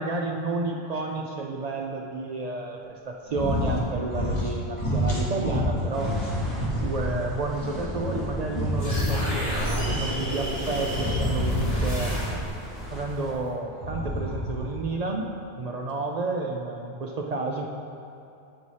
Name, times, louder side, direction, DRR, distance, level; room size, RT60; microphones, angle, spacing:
voice 1, 0.0-6.1 6.8-12.1 12.9-15.3 15.6-17.7, right 3 dB, 65° right, 0 dB, 0.4 m, -31 dB
sound 1, 3.3-3.8 4.1-4.5 4.8-7.2 7.6-9.5 10.9-12.3 13.7-14.8, left 1 dB, 30° left, 1.2 m, -28 dB
sound 2, 5.9-13.3, right 1 dB, ahead, 0.7 m, -37 dB
sound 3, 8.8-12.6, equal, 75° left, 2.3 m, -30 dB
8.6 x 4.6 x 4.1 m, 2.7 s
omnidirectional pair, 1.2 m